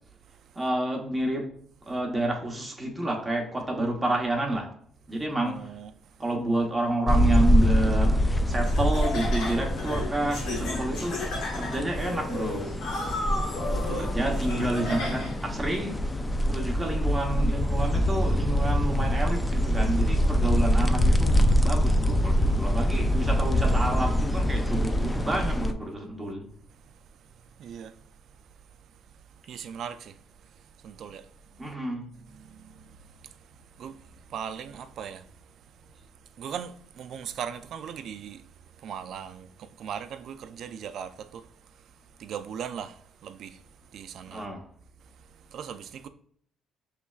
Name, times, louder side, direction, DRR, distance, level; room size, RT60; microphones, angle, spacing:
voice 1, 0.6-1.5 1.9-4.7 5.1-5.7 6.2-11.3 11.6-13.1 14.0-16.0 16.5-26.5 31.6-32.1 44.3-44.7, right 1 dB, 10° right, 0.9 m, -29 dB
voice 2, 5.4-5.9 13.7-14.1 27.6-27.9 29.5-30.2 30.8-31.3 32.3-33.0 33.2-33.3 33.8-34.0 34.3-35.3 36.4-38.4 38.8-41.5 42.2-43.6 43.9-44.4 45.5-46.1, right 8 dB, 60° right, 0.3 m, -39 dB
sound 1, 7.1-25.7, equal, 15° left, 0.3 m, -24 dB
Laughter, 8.6-15.5, left 2 dB, 85° left, 1.1 m, -34 dB
5.9 x 3.1 x 2.3 m
cardioid pair, 125°, 0 cm